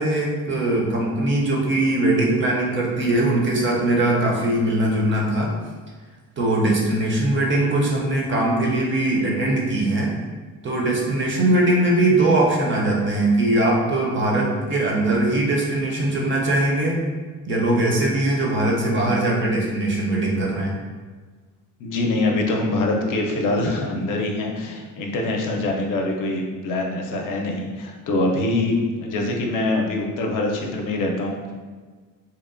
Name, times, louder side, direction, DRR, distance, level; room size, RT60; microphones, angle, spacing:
voice 1, 0.0-5.5 6.4-10.1 10.6-17.0 17.5-20.8, right 1 dB, 35° right, -2 dB, 0.5 m, -21 dB
voice 2, 21.8-31.5, left 2 dB, 65° left, 1 dB, 0.5 m, -24 dB
2.8 x 2.1 x 2.4 m, 1.4 s
cardioid pair, 120°, 35 cm